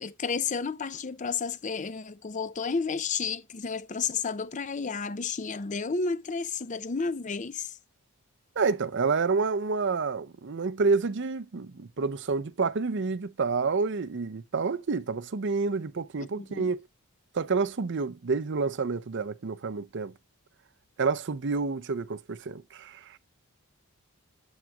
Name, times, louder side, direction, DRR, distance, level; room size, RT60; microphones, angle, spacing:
voice 1, 0.0-7.7 16.2-16.7, left 5 dB, 35° left, 0.5 m, -32 dB
voice 2, 8.6-16.8 17.3-20.1 21.0-23.2, right 4 dB, 55° right, 0.6 m, -29 dB
8.3 x 5.9 x 2.3 m
head